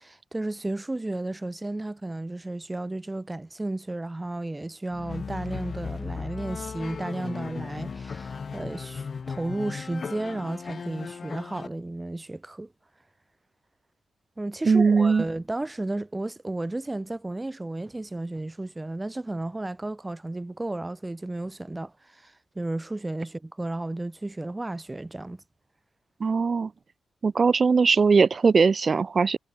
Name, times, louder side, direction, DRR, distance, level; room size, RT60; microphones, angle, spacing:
voice 1, 0.0-12.7 14.4-25.4, right 2 dB, 15° right, 1.0 m, -33 dB
sound 1, 4.9-11.7, left 5 dB, 40° left, 0.6 m, -36 dB
voice 2, 14.7-15.2 26.2-26.7 27.2-29.4, right 5 dB, 35° right, 0.3 m, -20 dB
wide cardioid pair, 130°, 0 cm